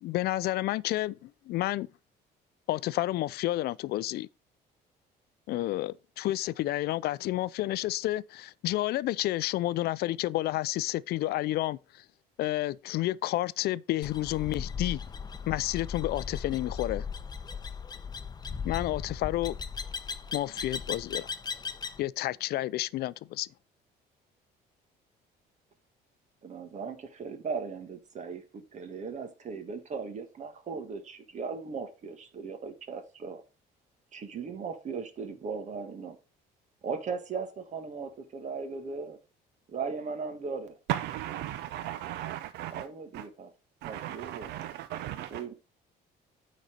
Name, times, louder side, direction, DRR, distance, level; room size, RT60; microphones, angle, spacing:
voice 1, 0.0-1.9 2.7-4.3 5.5-12.0 12.4-15.0 15.5-17.1 18.6-19.6 20.3-21.3 22.0-23.5, left 16 dB, 70° left, 0.4 m, -30 dB
sound 1, 14.0-22.0, left 5 dB, 25° left, 0.8 m, -37 dB
voice 2, 26.4-33.4 34.1-36.2 36.8-39.2 39.7-40.8 42.7-43.5 43.8-44.7 45.3-45.5, right 5 dB, 45° right, 1.6 m, -38 dB
voice 3, 40.9-41.5 42.0-42.8 43.1-43.2 43.8-45.4, right 13 dB, 80° right, 0.5 m, -35 dB
9.2 x 4.2 x 5.1 m
cardioid pair, 110°, 17 cm